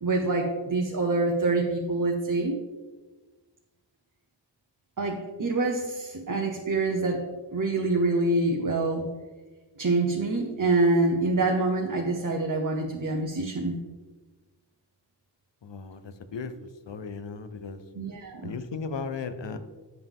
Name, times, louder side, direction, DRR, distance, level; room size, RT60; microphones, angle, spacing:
voice 1, 0.0-2.6 5.0-7.2 7.5-9.1 9.8-13.8 17.9-18.5, right 2 dB, 45° right, 1 dB, 0.9 m, -26 dB
voice 2, 15.6-16.5 16.9-17.8 18.4-19.6, left 5 dB, 70° left, 11 dB, 0.7 m, -36 dB
10.5 x 5.4 x 3.6 m, 1.3 s
wide cardioid pair, 65°, 45 cm